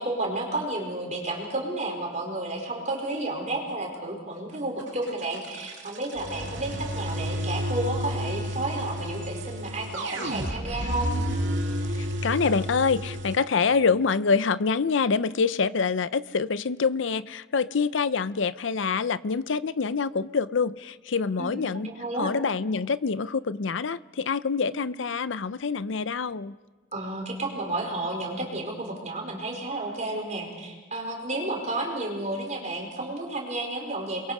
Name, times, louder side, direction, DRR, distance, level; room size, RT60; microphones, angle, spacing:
voice 1, 0.0-11.1 21.4-22.3 26.9-34.3, right 2 dB, 40° right, 1 dB, 4.8 m, -31 dB
sound 1, 4.8-13.4, equal, 70° right, 2.7 m, -31 dB
voice 2, 11.9-21.9 22.2-26.6, left 5 dB, 75° left, 16 dB, 0.6 m, -26 dB
28.5 x 22.5 x 5.0 m, 1.3 s
head